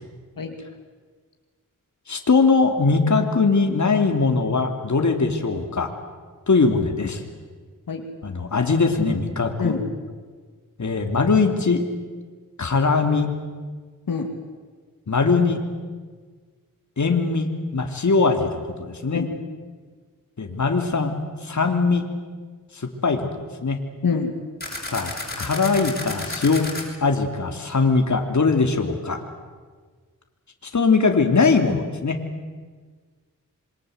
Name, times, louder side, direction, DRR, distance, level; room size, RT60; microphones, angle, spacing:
voice 1, 2.1-5.9 6.5-7.2 8.2-9.8 10.8-11.8 12.6-13.3 15.1-15.6 17.0-19.3 20.4-21.1 21.4-22.1 22.8-23.3 23.6-23.8 24.9-25.1 25.4-26.7 27.0-29.2 30.7-32.2, left 4 dB, 60° left, 5 dB, 2.9 m, -21 dB
voice 2, 24.0-24.4, left 5 dB, 80° left, 3 dB, 2.5 m, -25 dB
sound 1, 24.6-26.8, left 2 dB, 30° left, 7.6 m, -32 dB
27.0 x 24.0 x 8.0 m, 1.5 s
wide cardioid pair, 75°, 33 cm